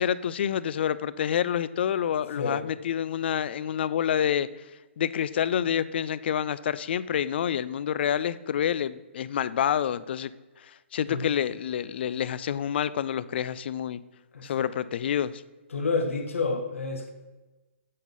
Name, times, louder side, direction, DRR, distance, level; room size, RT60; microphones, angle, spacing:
voice 1, 0.0-4.5 5.0-10.3 10.6-14.0 14.4-15.4, left 9 dB, 55° left, 17 dB, 0.3 m, -28 dB
voice 2, 2.4-2.7 11.1-11.3 14.3-14.7 15.7-17.1, left 3 dB, 80° left, 5 dB, 1.0 m, -29 dB
7.5 x 4.1 x 5.3 m, 1.2 s
hypercardioid pair, 145°, 7 cm